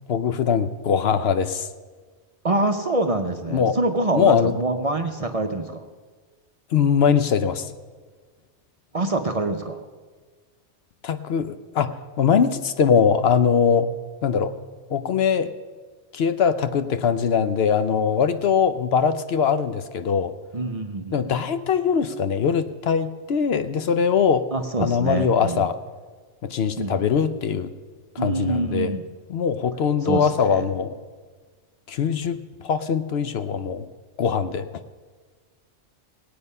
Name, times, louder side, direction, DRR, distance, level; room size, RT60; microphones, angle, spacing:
voice 1, 0.1-1.7 3.5-3.8 4.1-4.5 6.7-7.7 11.0-13.9 14.2-14.5 14.9-15.5 16.1-20.3 21.1-24.5 24.8-25.8 26.4-27.7 28.1-28.9 29.3-31.0 31.9-33.9 34.2-34.7, left 6 dB, 65° left, 10 dB, 0.8 m, -22 dB
voice 2, 2.4-5.8 8.9-9.8 20.5-21.1 24.5-25.7 26.8-27.1 28.2-29.0 30.0-30.7, right 2 dB, 40° right, 5 dB, 0.6 m, -25 dB
18.5 x 8.7 x 5.4 m, 1.5 s
omnidirectional pair, 1.2 m